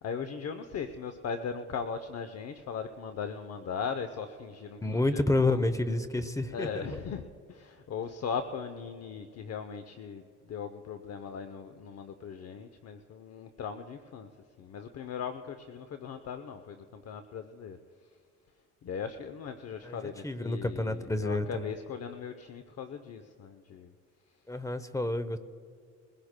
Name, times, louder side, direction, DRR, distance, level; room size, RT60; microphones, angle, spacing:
voice 1, 0.0-5.7 6.5-14.3 14.6-17.8 18.8-23.9, left 6 dB, 55° left, 8 dB, 0.7 m, -39 dB
voice 2, 4.8-7.0 19.8-20.0 20.2-21.7 24.5-25.4, left 2 dB, 10° left, 12 dB, 0.7 m, -29 dB
22.0 x 16.5 x 2.2 m, 2.3 s
cardioid pair, 90°, 30 cm